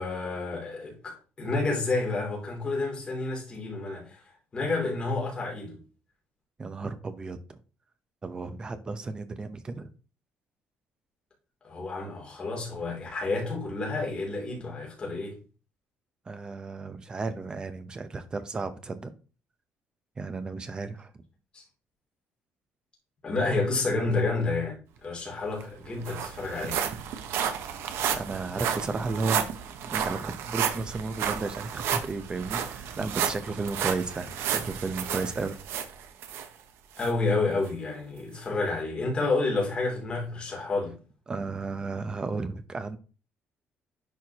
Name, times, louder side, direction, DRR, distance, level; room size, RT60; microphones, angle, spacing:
voice 1, 0.0-4.2 4.5-5.8 11.6-15.4 21.5-21.6 23.2-26.8 37.0-41.0, left 3 dB, 25° left, 2.9 m, -30 dB
voice 2, 6.6-7.6 8.2-9.9 16.3-19.1 20.2-21.1 28.1-29.5 29.9-35.6 40.5-40.6 41.3-43.0, right 3 dB, 20° right, 0.7 m, -33 dB
sound 1, 25.3-25.4 25.6-36.5 37.0-37.1 37.7-37.8, right 8 dB, 80° right, 0.9 m, -32 dB
10.5 x 4.5 x 2.9 m
cardioid pair, 170°, 4 cm